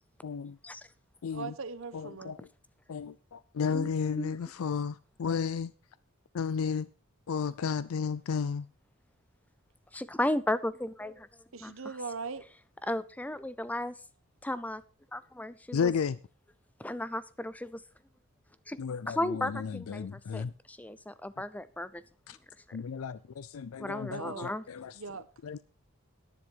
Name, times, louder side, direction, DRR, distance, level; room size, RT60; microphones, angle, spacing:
voice 1, 0.2-0.6 1.2-1.5 1.9-2.4 2.9-5.7 6.3-6.9 7.3-8.7 15.7-16.2 18.8-20.5 22.3-22.4 22.7-24.9 25.4-25.6, left 6 dB, 75° left, 0.4 m, -33 dB
voice 2, 1.3-2.3 11.5-12.4 24.1-24.5 24.9-25.2, right 4 dB, 65° right, 1.1 m, -39 dB
voice 3, 9.9-11.3 11.6-11.7 12.9-13.9 14.4-14.8 15.1-15.9 16.8-17.8 18.7-18.8 19.1-22.0 22.7-22.8 23.8-24.6, left 1 dB, 5° left, 0.5 m, -34 dB
10.5 x 10.0 x 4.7 m
head